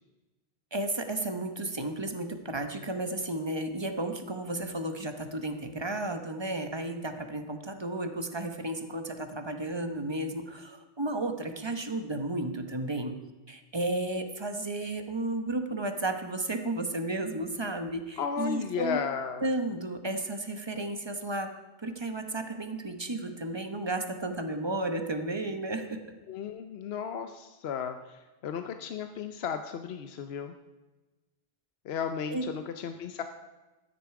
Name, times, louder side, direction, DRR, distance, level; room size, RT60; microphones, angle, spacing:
voice 1, 0.7-13.1 13.5-19.0 19.4-21.5 21.8-26.0 32.3-32.5, right 2 dB, 25° right, 7 dB, 1.0 m, -33 dB
voice 2, 18.2-19.4 26.3-30.5 31.9-33.2, left 7 dB, 75° left, 8 dB, 0.9 m, -34 dB
13.0 x 9.8 x 4.8 m, 1.1 s
omnidirectional pair, 1.1 m